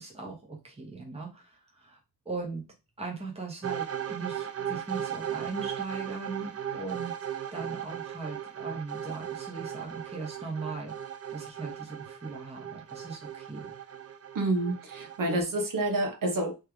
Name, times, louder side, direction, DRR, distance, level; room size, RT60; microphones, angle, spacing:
voice 1, 0.0-2.0 2.2-2.6 3.0-7.1 7.5-11.0 11.3-13.7, right 3 dB, 15° right, 1.0 m, -39 dB
sound 1, 3.6-15.4, right 9 dB, 40° right, 0.6 m, -37 dB
voice 2, 14.3-16.5, right 2 dB, 60° right, 1.0 m, -28 dB
3.3 x 3.1 x 3.4 m
wide cardioid pair, 145°, 37 cm